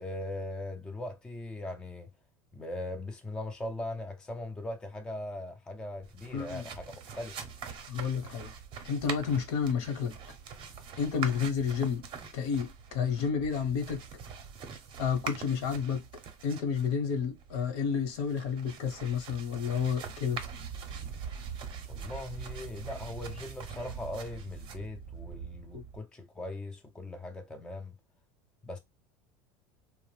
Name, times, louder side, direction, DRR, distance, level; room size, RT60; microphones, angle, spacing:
voice 1, 0.0-2.1 2.5-7.4 21.9-28.0 28.6-28.8, left 1 dB, 5° left, 0.3 m, -40 dB
sound 1, 6.0-26.0, right 6 dB, 35° right, 0.6 m, -43 dB
voice 2, 6.3-6.7 7.9-8.5 8.8-10.1 11.0-12.0 12.3-14.0 15.0-16.0 16.4-20.4 25.7-25.8, left 6 dB, 70° left, 0.9 m, -30 dB
2.6 x 2.0 x 3.0 m
supercardioid pair, 135°, 14 cm